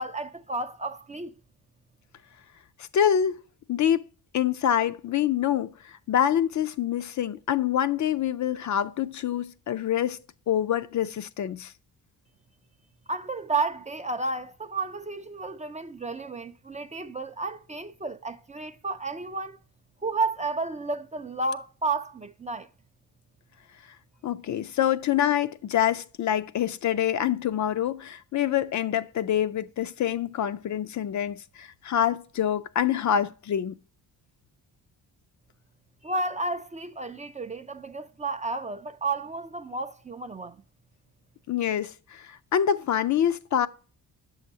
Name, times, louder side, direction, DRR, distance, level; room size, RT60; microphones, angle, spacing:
voice 1, 0.0-1.3 13.1-19.6 20.0-22.7 36.0-40.6, right 3 dB, 20° right, 0.4 m, -32 dB
voice 2, 2.9-3.4 3.7-4.1 4.3-10.2 10.5-11.7 24.2-33.8 41.5-43.7, left 10 dB, 50° left, 0.4 m, -26 dB
7.9 x 6.4 x 2.7 m
cardioid pair, 80°, 39 cm